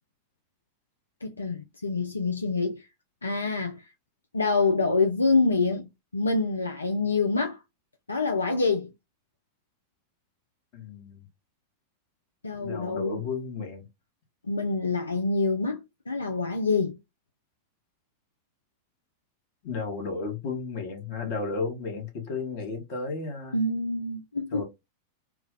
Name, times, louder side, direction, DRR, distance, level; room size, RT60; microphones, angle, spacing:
voice 1, 1.2-2.9 3.2-3.8 4.3-7.6 8.1-8.9 12.4-13.2 14.4-17.0 23.5-24.6, left 3 dB, 75° left, 0.4 m, -26 dB
voice 2, 10.7-11.2 12.5-13.8 19.6-23.6 24.5-24.6, left 4 dB, 45° left, 1.0 m, -33 dB
2.3 x 2.1 x 3.6 m
figure-of-eight pair, 90°, 0 cm